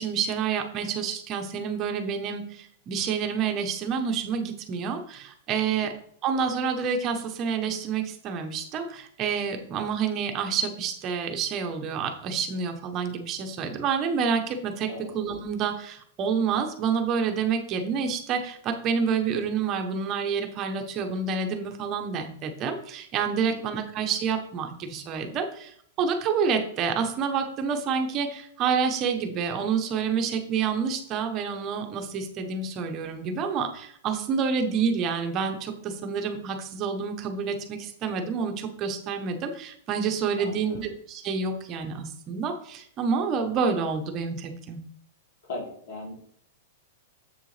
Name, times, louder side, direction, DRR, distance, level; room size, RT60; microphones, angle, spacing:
voice 1, 0.0-6.0 6.2-44.8, right 6 dB, 25° right, 5 dB, 0.8 m, -28 dB
voice 2, 23.4-23.8 40.4-40.9 45.4-46.1, left 2 dB, 60° left, -1 dB, 2.7 m, -39 dB
7.2 x 6.6 x 3.3 m, 0.63 s
supercardioid pair, 170°, 0 cm